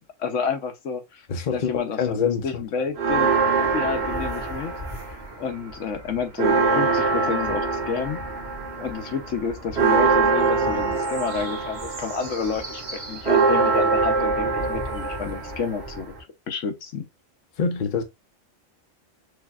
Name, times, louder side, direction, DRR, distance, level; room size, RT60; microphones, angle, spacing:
voice 1, 0.2-1.3 1.5-3.3 3.7-4.7 5.1-8.2 8.8-16.1 16.5-17.1, left 6 dB, 70° left, 1.2 m, -30 dB
voice 2, 1.3-2.8 17.6-18.0, left 5 dB, 45° left, 0.8 m, -26 dB
sound 1, 3.0-5.3 5.7-16.2, right 4 dB, 55° right, 1.8 m, -24 dB
6.4 x 2.9 x 2.4 m
omnidirectional pair, 1.4 m